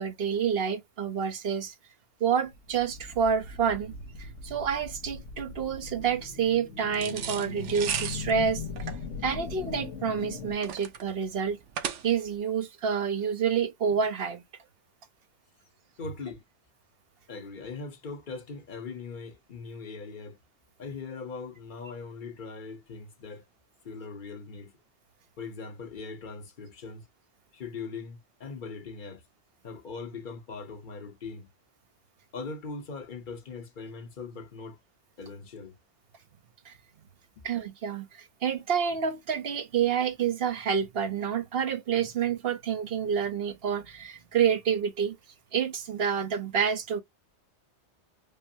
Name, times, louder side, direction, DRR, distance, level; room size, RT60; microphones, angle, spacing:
voice 1, 0.0-1.7 2.2-3.9 4.2-8.6 9.2-11.6 12.0-14.4 36.7-36.8 37.4-45.2 45.5-47.0, right 7 dB, 60° right, 1.0 m, -28 dB
sound 1, 2.4-10.6, left 4 dB, 90° left, 1.4 m, -40 dB
sound 2, 6.9-12.4, right 8 dB, 80° right, 1.0 m, -36 dB
voice 2, 16.0-16.4 17.3-20.4 20.8-23.4 23.8-24.7 25.4-27.0 27.5-29.2 29.6-31.5 32.3-34.8 35.2-35.8 37.4-37.5, left 4 dB, 45° left, 1.0 m, -40 dB
5.3 x 2.0 x 2.7 m
omnidirectional pair, 1.2 m